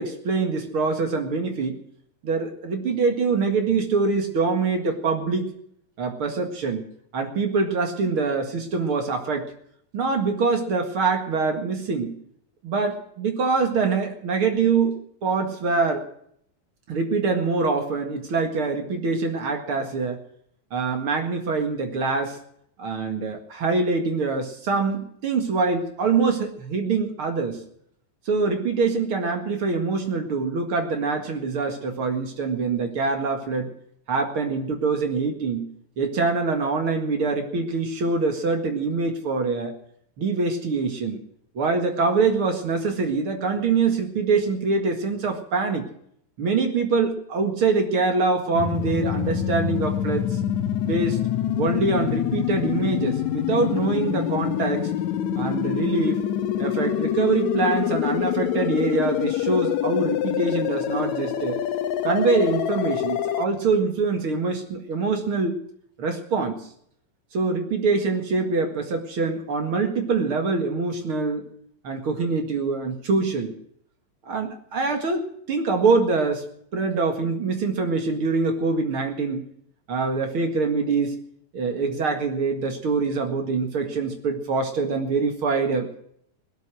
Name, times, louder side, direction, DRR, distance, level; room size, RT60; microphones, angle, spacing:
voice 1, 0.0-1.8 2.2-5.5 6.0-6.8 7.1-9.5 9.9-12.1 12.6-14.9 15.2-16.0 16.9-20.2 20.7-22.4 22.8-27.6 28.3-33.7 34.1-35.7 36.0-39.7 40.2-41.2 41.5-45.8 46.4-50.4 50.8-51.2 51.6-54.9 55.4-56.2 56.6-61.6 62.0-65.6 66.0-66.7 67.3-71.4 71.8-73.5 74.3-76.4 76.7-79.5 79.9-81.2 81.5-85.9, right 4 dB, 45° right, 5 dB, 2.3 m, -24 dB
sound 1, 48.5-63.4, left 11 dB, 70° left, 1.9 m, -26 dB
17.5 x 12.5 x 6.3 m, 0.68 s
omnidirectional pair, 4.0 m